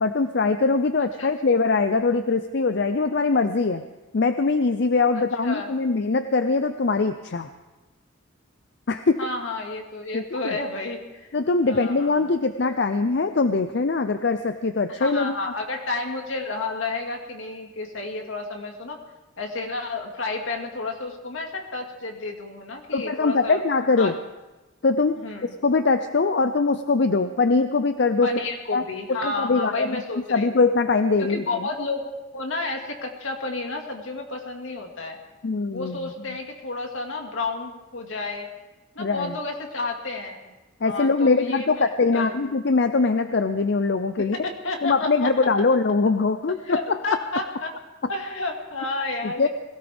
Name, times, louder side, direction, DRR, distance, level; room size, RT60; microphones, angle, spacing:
voice 1, 0.0-3.8 4.1-7.5 8.9-9.2 10.1-10.4 11.3-15.4 22.9-24.2 24.8-25.2 25.4-28.3 28.7-28.8 29.1-30.0 30.3-31.7 35.4-36.4 39.0-39.4 40.8-44.4 44.8-47.2 49.2-49.5, left 4 dB, 55° left, 9 dB, 0.5 m, -22 dB
voice 2, 9.2-11.4 11.7-12.3 12.6-12.7 14.9-19.0 19.4-23.6 24.0-24.1 25.2-25.6 28.2-30.5 31.2-35.2 35.7-38.5 39.0-40.4 40.8-42.3 44.2-45.3 46.6-47.7 48.1-49.5, left 3 dB, 80° left, 2 dB, 2.1 m, -31 dB
21.0 x 17.0 x 3.5 m, 1.1 s
head